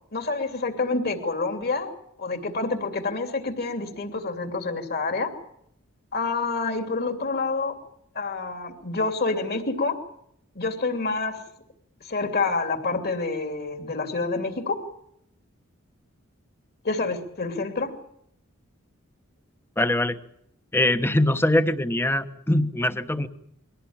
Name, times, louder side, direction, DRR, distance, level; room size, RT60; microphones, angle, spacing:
voice 1, 0.1-1.9 2.2-5.3 6.1-7.7 8.1-10.0 10.5-11.4 12.0-14.9 16.8-18.0, left 3 dB, 50° left, 7 dB, 2.8 m, -27 dB
voice 2, 19.8-20.2 20.7-23.3, left 1 dB, 10° left, 11 dB, 1.1 m, -22 dB
22.5 x 17.5 x 8.8 m, 0.75 s
head